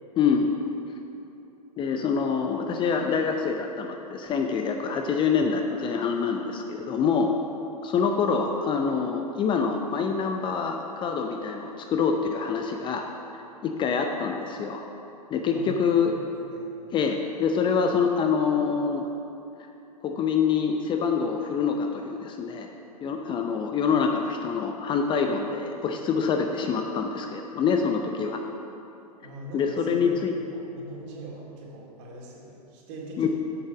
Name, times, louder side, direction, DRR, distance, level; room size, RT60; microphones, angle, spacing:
voice 1, 0.2-0.5 1.8-7.3 7.8-13.0 13.6-14.8 15.3-16.1 16.9-19.0 20.0-22.7 23.0-28.4 29.5-30.3 33.2-33.3, left 6 dB, 25° left, 4 dB, 0.6 m, -25 dB
voice 2, 29.2-33.3, right 1 dB, 45° right, -3 dB, 2.3 m, -42 dB
8.7 x 6.5 x 5.8 m, 2.9 s
figure-of-eight pair, 100°, 20 cm